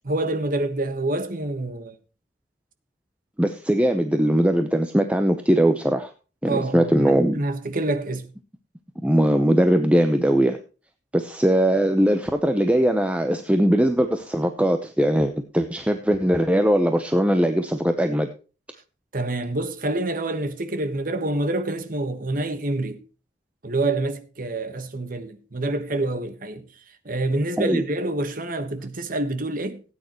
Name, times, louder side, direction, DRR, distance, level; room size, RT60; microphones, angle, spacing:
voice 1, 0.0-2.0 6.5-8.3 19.1-23.0 23.6-26.7 27.0-29.8, right 2 dB, 50° right, 1.3 m, -27 dB
voice 2, 3.4-6.1 6.4-7.4 9.0-10.6 11.1-18.3 27.6-27.8, equal, 5° right, 0.8 m, -20 dB
17.5 x 9.2 x 3.0 m
head